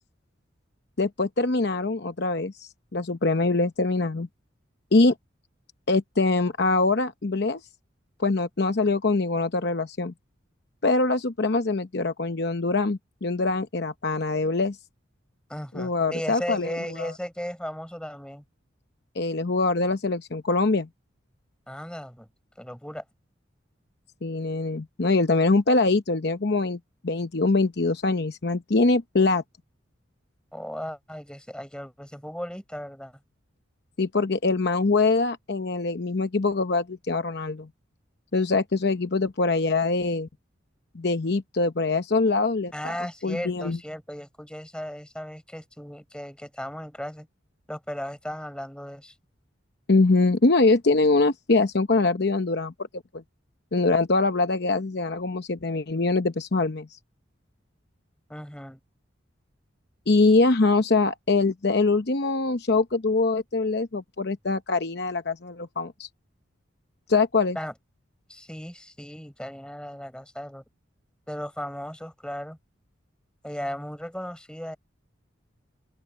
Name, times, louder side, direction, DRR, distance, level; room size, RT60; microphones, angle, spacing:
voice 1, 1.0-4.3 4.9-5.1 5.9-7.6 8.2-10.1 10.8-14.8 15.7-17.1 19.2-20.9 24.2-29.4 34.0-37.7 38.3-40.3 40.9-42.9 43.2-43.8 49.9-52.7 53.1-53.2 53.7-56.9 60.1-66.1 67.1-67.6, left 3 dB, 55° left, 0.8 m, -23 dB
voice 2, 15.5-18.4 21.7-22.3 22.6-23.0 30.5-33.1 42.7-47.3 47.7-49.1 58.3-58.8 67.6-67.7 68.3-70.6 71.3-72.6 73.4-74.8, equal, 5° left, 7.0 m, -36 dB
open air
head